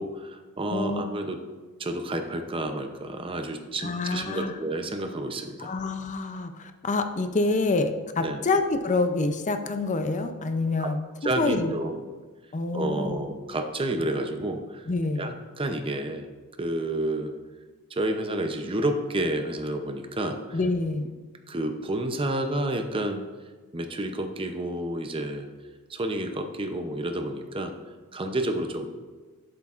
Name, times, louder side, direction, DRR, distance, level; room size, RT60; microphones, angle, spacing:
voice 1, 0.0-1.4 1.8-5.7 8.2-8.4 10.8-10.9 11.2-12.0 12.7-14.8 15.2-16.3 16.6-17.3 17.9-20.6 21.5-23.2 23.7-25.5 25.9-27.7 28.1-28.9, right 1 dB, 25° right, 6 dB, 0.6 m, -30 dB
voice 2, 0.7-1.0 3.8-4.6 5.6-11.7 12.5-13.2 14.9-15.3 20.5-21.1, left 3 dB, 35° left, 7 dB, 0.5 m, -27 dB
11.0 x 7.9 x 2.5 m, 1.4 s
head